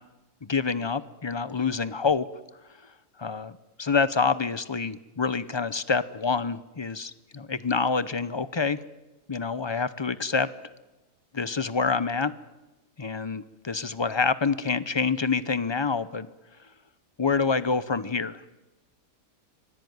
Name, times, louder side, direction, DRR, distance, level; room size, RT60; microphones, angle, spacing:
voice 1, 0.4-2.2 3.2-3.5 3.8-8.8 9.3-10.5 11.3-12.3 13.0-16.3 17.2-18.4, left 5 dB, 35° left, 16 dB, 0.4 m, -27 dB
25.0 x 17.5 x 9.5 m, 1.1 s
omnidirectional pair, 1.7 m